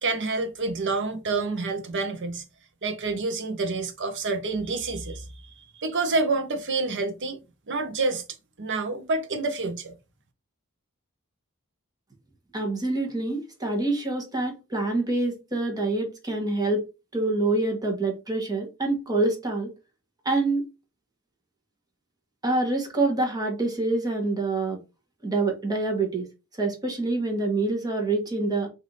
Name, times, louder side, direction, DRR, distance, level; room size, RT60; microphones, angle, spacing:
voice 1, 0.0-2.4 2.8-7.4 7.7-8.2 8.6-9.9, right 3 dB, 55° right, 0.8 m, -28 dB
voice 2, 12.5-16.9 17.1-19.7 20.2-20.6 22.4-24.8 25.2-26.3 26.6-28.7, right 2 dB, 20° right, 1.1 m, -26 dB
3.3 x 2.7 x 3.9 m
head